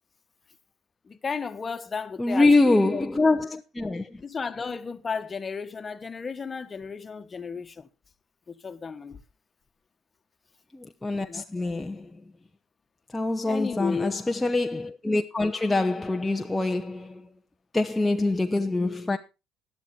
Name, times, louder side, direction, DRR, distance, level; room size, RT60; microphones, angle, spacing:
voice 1, 1.1-3.0 4.2-7.9 8.5-9.2 11.1-11.4 13.4-14.1, left 5 dB, 30° left, 1.4 m, -34 dB
voice 2, 2.2-4.2 10.7-12.1 13.1-17.2 17.7-19.2, left 2 dB, 10° left, 0.8 m, -24 dB
12.0 x 11.5 x 4.4 m
supercardioid pair, 85°, 0 cm